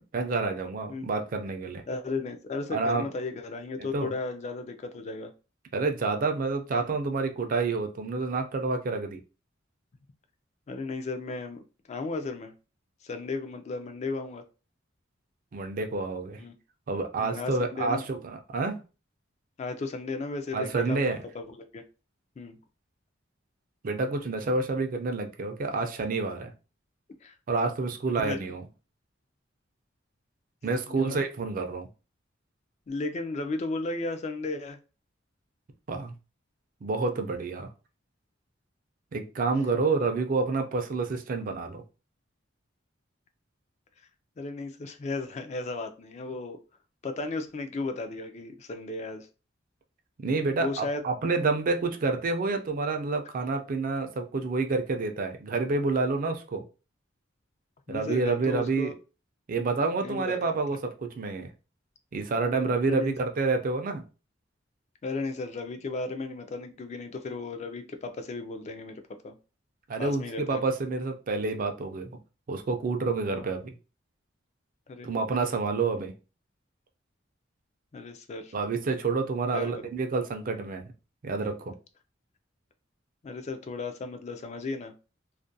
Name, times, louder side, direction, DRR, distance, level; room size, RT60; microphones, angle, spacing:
voice 1, 0.1-1.8 2.7-3.1 3.8-4.1 5.7-9.2 15.5-16.4 16.9-18.8 20.5-21.2 23.8-26.5 27.5-28.6 30.6-31.9 35.9-36.1 36.8-37.7 39.1-41.8 50.2-56.6 57.9-58.9 59.5-61.5 62.1-64.0 69.9-72.2 72.5-73.7 75.0-76.1 78.5-80.9 81.2-81.7, right 3 dB, 45° right, 6 dB, 0.4 m, -28 dB
voice 2, 1.9-5.3 10.7-11.6 11.9-12.5 13.0-14.4 16.4-16.5 17.2-18.1 19.6-21.8 22.4-22.6 27.2-27.4 28.2-28.4 30.9-31.2 32.9-34.8 44.4-46.6 47.0-49.3 50.6-51.0 57.9-58.9 60.0-60.4 62.9-63.1 65.0-69.4 70.0-70.6 73.3-73.5 74.9-75.1 77.9-78.5 79.5-79.9 83.2-84.9, left 3 dB, 35° left, 7 dB, 0.3 m, -35 dB
2.4 x 2.1 x 2.6 m, 0.32 s
head